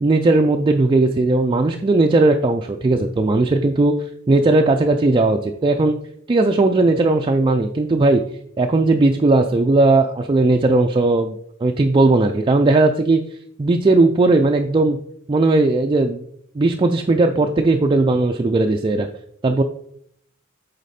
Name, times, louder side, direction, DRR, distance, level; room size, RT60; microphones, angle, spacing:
voice 1, 0.0-3.9 4.3-6.0 6.3-8.2 8.6-13.2 13.6-15.0 15.3-16.2 16.6-19.1 19.4-19.6, right 2 dB, 25° right, 4 dB, 0.4 m, -17 dB
8.2 x 4.1 x 4.2 m, 0.68 s
head